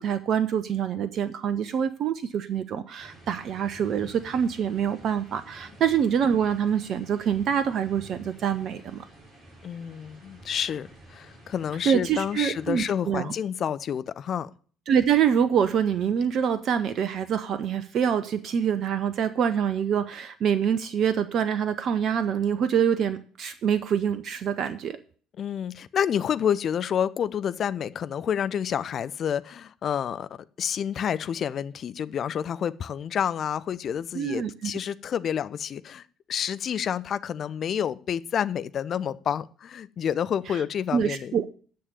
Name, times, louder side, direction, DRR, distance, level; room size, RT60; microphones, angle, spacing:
voice 1, 0.0-9.0 11.8-13.3 14.9-25.0 34.1-34.7 40.9-41.5, right 8 dB, 45° right, 0.7 m, -25 dB
sound 1, 3.0-12.9, right 1 dB, 25° right, 6.3 m, -50 dB
voice 2, 9.6-14.5 25.4-30.3 30.6-36.0 36.3-41.3, left 8 dB, 45° left, 0.5 m, -29 dB
10.0 x 6.7 x 6.9 m
figure-of-eight pair, 55°, 0 cm